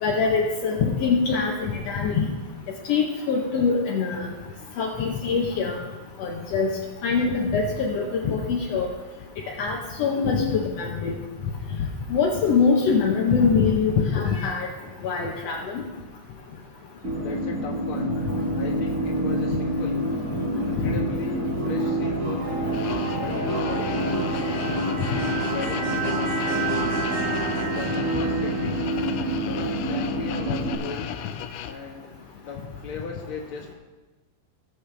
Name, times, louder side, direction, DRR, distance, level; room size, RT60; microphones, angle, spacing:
voice 1, 0.0-2.3 2.9-4.3 4.8-5.8 6.2-6.7 7.0-8.9 9.6-11.1 12.1-14.7 15.0-15.8 20.8-20.9, left 5 dB, 70° left, -2 dB, 1.6 m, -23 dB
sound 1, 17.0-30.7, right 1 dB, 40° right, 1.3 m, -27 dB
voice 2, 17.2-18.2 18.5-20.0 20.6-22.5 23.2-24.7 25.1-26.8 27.7-28.9 29.4-31.2 31.7-32.1 32.4-33.7, left 4 dB, 50° left, -1 dB, 1.9 m, -37 dB
sound 2, 22.7-31.7, left 10 dB, 85° left, 2.4 m, -36 dB
19.0 x 7.5 x 3.4 m, 1.2 s
omnidirectional pair, 4.1 m